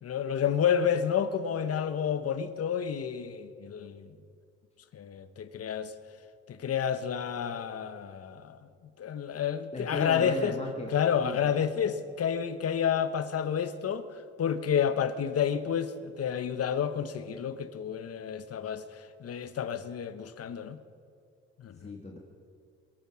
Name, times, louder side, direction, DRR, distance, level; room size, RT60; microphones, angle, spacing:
voice 1, 0.0-4.1 4.9-5.9 6.5-8.6 9.0-10.5 10.9-14.1 14.4-20.8 21.6-22.0, left 8 dB, 55° left, 1.0 m, -30 dB
voice 2, 9.7-10.9 11.2-11.5 21.8-22.2, left 2 dB, 20° left, 1.8 m, -36 dB
22.0 x 8.5 x 6.1 m
cardioid pair, 90°, 30 cm